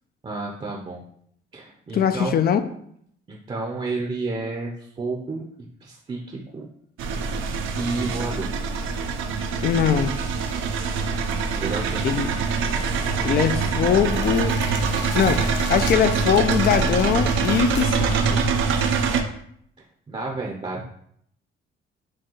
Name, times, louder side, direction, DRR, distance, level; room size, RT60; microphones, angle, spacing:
voice 1, 0.2-1.0 1.5-2.4 3.3-5.4 5.8-6.6 7.8-8.5 11.6-12.2 20.1-20.9, right 3 dB, 30° right, -1 dB, 0.6 m, -31 dB
voice 2, 1.9-2.6 9.6-10.1 12.0-12.3 13.2-14.6 15.1-18.1 18.3-18.4, left 8 dB, 50° left, 10 dB, 0.4 m, -21 dB
sound 1, 7.0-19.2, right 5 dB, 80° right, 0.5 m, -24 dB
Crackle, 14.0-19.1, left 2 dB, 65° left, 0.9 m, -34 dB
6.0 x 2.3 x 2.9 m, 0.68 s
cardioid pair, 90°, 20 cm